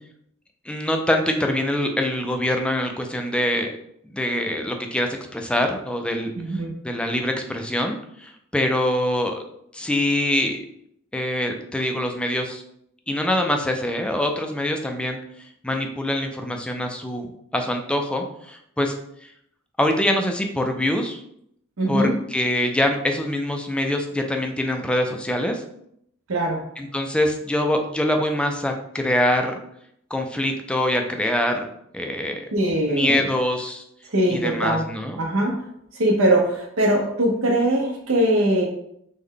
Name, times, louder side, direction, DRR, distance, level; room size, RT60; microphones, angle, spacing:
voice 1, 0.7-3.7 4.1-6.3 6.8-9.4 9.7-10.6 11.1-12.6 13.1-15.2 15.6-18.9 19.8-21.2 21.9-25.6 26.8-29.6 30.1-31.7 31.9-32.4 32.9-33.8 34.3-35.2, left 1 dB, 5° left, 4 dB, 0.3 m, -24 dB
voice 2, 6.4-6.7 21.8-22.1 26.3-26.6 32.5-33.2 34.1-34.9 35.2-35.6 35.9-38.7, right 1 dB, 80° right, 1 dB, 0.8 m, -21 dB
3.2 x 2.1 x 3.7 m, 0.72 s
head